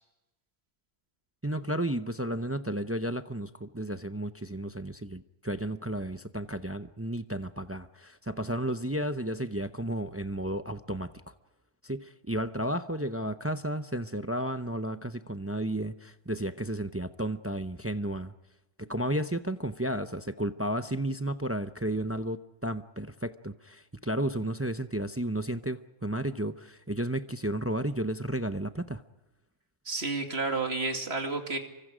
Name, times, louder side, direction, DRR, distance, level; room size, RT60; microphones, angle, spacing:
voice 1, 1.4-11.3 11.8-18.3 18.8-29.0, right 1 dB, 15° right, 10 dB, 0.6 m, -33 dB
voice 2, 29.8-31.6, right 3 dB, 60° right, 4 dB, 2.8 m, -31 dB
29.0 x 24.5 x 5.1 m, 1.0 s
omnidirectional pair, 1.2 m